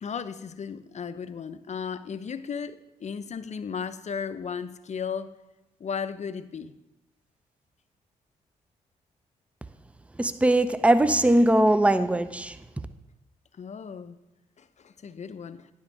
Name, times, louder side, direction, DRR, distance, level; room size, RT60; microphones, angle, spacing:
voice 1, 0.0-5.3 5.8-6.7 13.6-14.2 14.6-15.7, left 6 dB, 45° left, 0.5 m, -35 dB
voice 2, 10.2-12.6, right 1 dB, 5° right, 0.5 m, -20 dB
9.7 x 3.5 x 6.4 m
hypercardioid pair, 40°, 17 cm